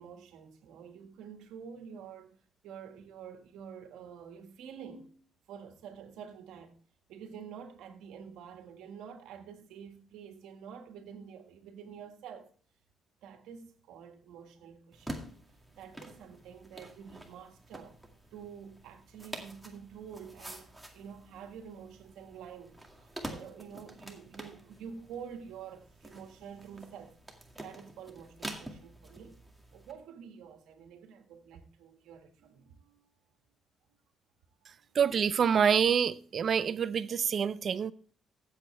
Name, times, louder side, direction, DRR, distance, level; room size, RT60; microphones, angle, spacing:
voice 1, 0.0-2.4 2.6-6.7 7.1-12.5 13.2-18.0 18.3-27.2 27.6-29.4 29.7-33.1 34.7-35.0, right 7 dB, 90° right, 1.6 m, -48 dB
sound 1, 14.9-29.9, right 1 dB, 5° right, 2.1 m, -47 dB
voice 2, 35.0-37.9, right 7 dB, 50° right, 0.5 m, -26 dB
14.5 x 8.0 x 3.3 m
cardioid pair, 90°, 0 cm